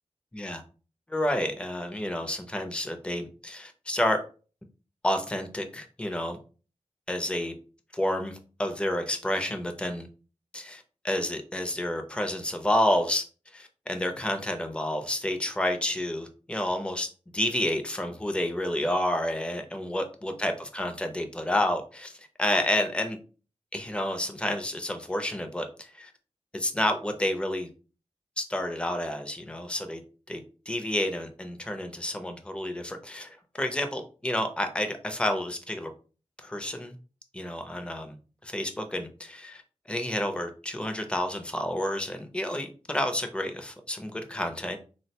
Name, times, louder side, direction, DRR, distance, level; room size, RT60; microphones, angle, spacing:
voice 1, 1.1-4.2 5.0-6.4 7.1-7.5 7.9-10.1 10.5-13.2 13.5-17.1 17.3-23.2 23.7-26.1 26.5-27.7 28.4-30.0 30.3-35.9 36.4-36.9 37.3-38.2 38.4-39.6 39.9-44.8, left 1 dB, 10° left, 6 dB, 0.4 m, -30 dB
3.7 x 2.1 x 2.7 m, 0.36 s
wide cardioid pair, 100°, 11 cm